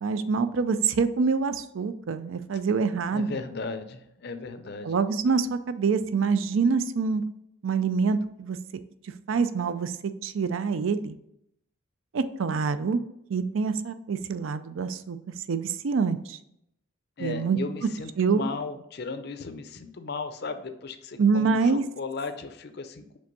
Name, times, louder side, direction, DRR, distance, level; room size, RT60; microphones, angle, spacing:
voice 1, 0.0-3.4 4.8-7.2 7.6-8.6 9.3-10.0 10.2-11.2 12.1-13.0 13.3-15.2 15.5-16.4 17.2-17.6 18.2-18.4 21.2-21.8, right 5 dB, 75° right, 12 dB, 0.4 m, -25 dB
voice 2, 3.1-4.9 17.2-23.0, left 4 dB, 50° left, 9 dB, 0.5 m, -36 dB
5.2 x 3.4 x 5.3 m, 0.78 s
head